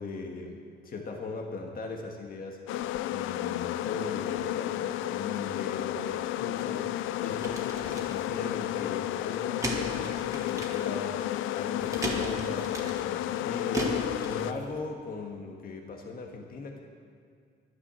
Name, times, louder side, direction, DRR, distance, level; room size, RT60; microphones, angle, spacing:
voice 1, 0.0-2.6 3.1-16.8, left 4 dB, 45° left, 2 dB, 1.6 m, -39 dB
sound 1, 2.7-14.5, left 13 dB, 90° left, 0.4 m, -32 dB
sound 2, 6.1-14.9, right 1 dB, 15° right, 2.2 m, -38 dB
11.5 x 9.8 x 7.6 m, 2.1 s
cardioid pair, 90°, 20 cm